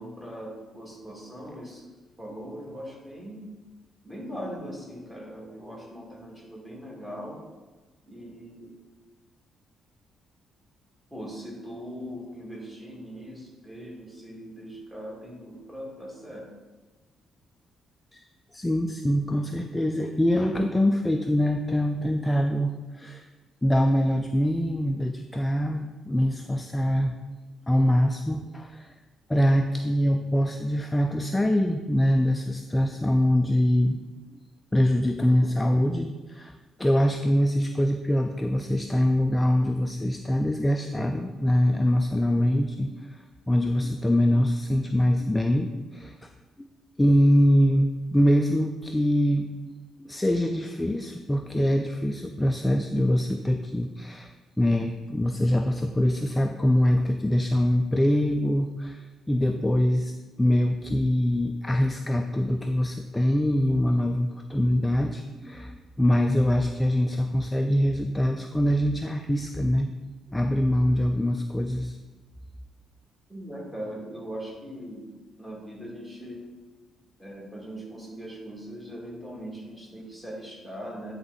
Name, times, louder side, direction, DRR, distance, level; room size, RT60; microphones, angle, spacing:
voice 1, 0.0-1.8 2.2-3.4 4.0-7.4 8.1-8.8 11.1-16.5 73.3-75.1 75.4-76.4 77.2-81.1, equal, 10° right, -4 dB, 2.3 m, -40 dB
voice 2, 18.5-23.3 23.6-27.2 27.7-28.9 29.3-34.0 34.3-34.4 34.7-46.3 46.6-46.7 47.0-60.1 60.4-69.9 70.3-72.0, equal, 10° left, 5 dB, 0.4 m, -24 dB
9.3 x 3.5 x 4.0 m, 1.2 s
cardioid pair, 90°, 0 cm